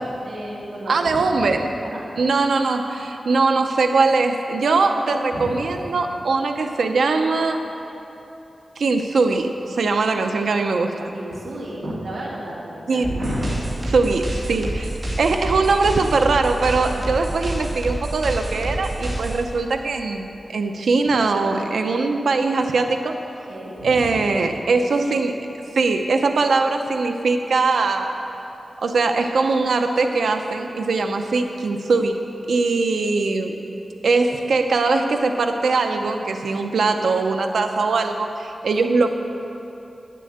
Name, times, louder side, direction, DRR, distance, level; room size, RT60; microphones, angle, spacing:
voice 1, 0.2-1.5 1.8-2.0 5.3-5.9 11.1-13.8 21.1-21.2 23.5-24.3, equal, 75° right, -4 dB, 2.4 m, -32 dB
voice 2, 0.9-1.7 2.2-7.6 8.8-11.1 12.9-13.1 13.9-14.9 15.2-23.2 23.8-25.4 25.7-28.2 28.8-32.2 32.5-33.5 34.0-39.1, right 3 dB, 90° right, 5 dB, 0.6 m, -21 dB
sound 1, 13.0-19.4, right 1 dB, 50° right, 2.5 m, -28 dB
9.3 x 7.6 x 7.8 m, 2.9 s
wide cardioid pair, 75°, 0 cm